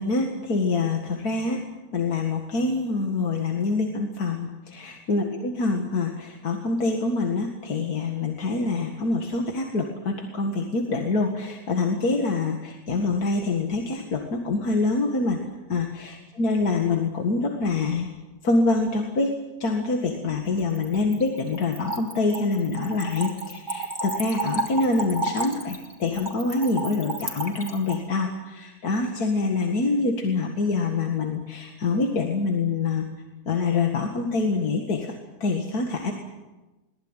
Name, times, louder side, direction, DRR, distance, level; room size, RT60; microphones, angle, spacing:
voice 1, 0.0-1.6 1.9-15.4 15.7-18.1 18.4-19.3 19.6-33.1 33.5-35.1 35.4-36.1, left 3 dB, 85° left, 2 dB, 2.4 m, -25 dB
Splash splatter / Trickle dribble, 20.6-28.0, right 2 dB, 15° right, 3.1 m, -32 dB
22.5 x 19.0 x 9.0 m, 1.1 s
omnidirectional pair, 1.6 m